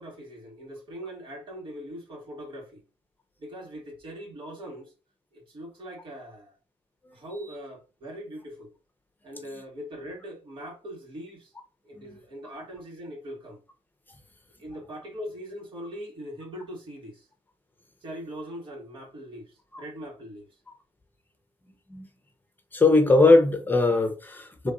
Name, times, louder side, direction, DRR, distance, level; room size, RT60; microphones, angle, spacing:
voice 1, 0.0-2.8 3.4-4.9 5.3-6.5 7.1-8.7 9.2-11.5 11.8-13.6 14.6-17.3 18.0-20.5, equal, 50° right, 2.7 m, -41 dB
voice 2, 22.7-24.7, left 2 dB, 20° left, 1.2 m, -20 dB
3.7 x 3.4 x 4.1 m
supercardioid pair, 70°, 11 cm